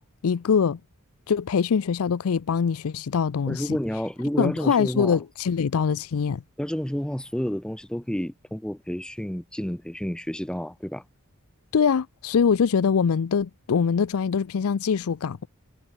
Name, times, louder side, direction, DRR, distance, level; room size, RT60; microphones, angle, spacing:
voice 1, 0.2-0.8 1.3-3.8 4.4-6.4 11.7-15.5, left 6 dB, 70° left, 0.4 m, -23 dB
voice 2, 3.5-5.2 6.6-11.0, equal, 5° left, 0.6 m, -30 dB
head